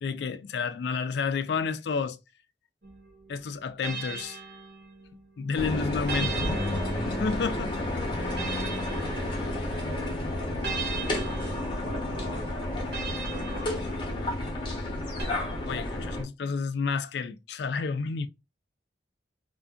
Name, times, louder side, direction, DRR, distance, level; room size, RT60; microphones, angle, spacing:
voice 1, 0.0-2.2 3.3-4.4 5.4-6.6 7.1-7.7 15.7-18.3, left 5 dB, 70° left, 0.3 m, -30 dB
sound 1, 2.8-5.3 6.1-9.9 10.6-14.4 15.2-15.3, right 5 dB, 65° right, 0.9 m, -39 dB
sound 2, 5.5-16.2, left 1 dB, 25° left, 0.8 m, -31 dB
voice 2, 6.1-6.6 8.2-13.0 13.3-14.0, right 1 dB, 35° right, 0.6 m, -45 dB
2.5 x 2.4 x 2.2 m
head